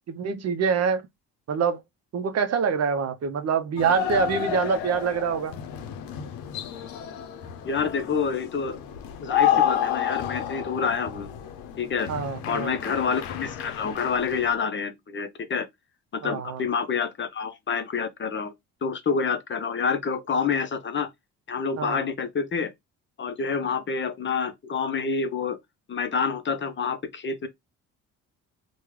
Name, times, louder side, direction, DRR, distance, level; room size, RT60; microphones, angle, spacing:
voice 1, 0.1-1.0 1.5-1.8 2.1-5.5 12.1-12.7 16.2-16.6 21.8-22.0, right 6 dB, 45° right, 0.6 m, -25 dB
sound 1, 3.8-14.5, left 10 dB, 80° left, 0.6 m, -30 dB
voice 2, 7.6-8.8 9.2-11.3 11.8-12.1 12.5-15.7 16.1-18.5 18.8-21.1 21.5-22.7 23.2-25.6 25.9-27.5, left 5 dB, 35° left, 0.6 m, -27 dB
3.5 x 2.2 x 3.0 m
supercardioid pair, 85°, 35 cm